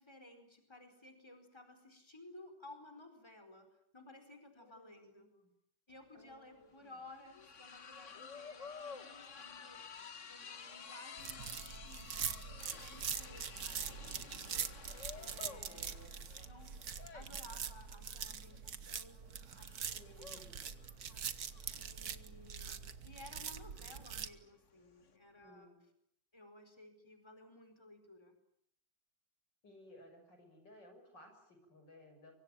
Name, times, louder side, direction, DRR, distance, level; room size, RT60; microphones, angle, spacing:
voice 1, 0.0-5.2 5.9-10.0 10.3-15.9 16.4-16.8 17.1-20.1 21.1-21.3 21.7-25.7 26.3-28.4, left 2 dB, 15° left, 7 dB, 4.7 m, -57 dB
voice 2, 4.6-5.5 6.1-6.9 15.4-16.1 19.9-21.0 25.4-25.8 29.6-32.3, left 1 dB, 90° left, 5 dB, 7.3 m, -60 dB
sound 1, 6.0-6.1 6.3-25.2, left 6 dB, 45° left, 1.6 m, -53 dB
sound 2, 11.2-24.3, right 7 dB, 60° right, 1.7 m, -43 dB
24.5 x 24.0 x 9.0 m, 0.72 s
omnidirectional pair, 1.9 m